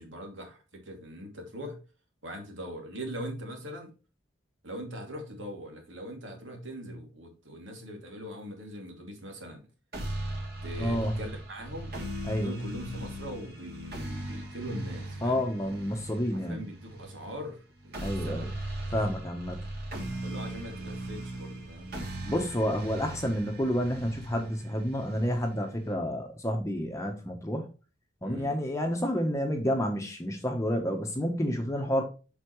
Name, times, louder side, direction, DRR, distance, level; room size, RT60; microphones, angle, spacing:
voice 1, 0.0-1.8 2.2-3.9 4.6-9.6 10.6-11.9 12.4-15.4 16.3-18.5 20.2-21.9 28.2-28.6, equal, 85° right, 2 dB, 2.6 m, -41 dB
sound 1, 9.9-25.9, right 1 dB, 55° right, 2.9 m, -39 dB
voice 2, 10.8-11.2 12.3-12.5 15.2-16.6 18.0-18.5 18.9-19.6 22.3-27.6 28.2-32.0, equal, 15° left, 3 dB, 0.9 m, -29 dB
8.1 x 5.7 x 3.1 m, 0.33 s
head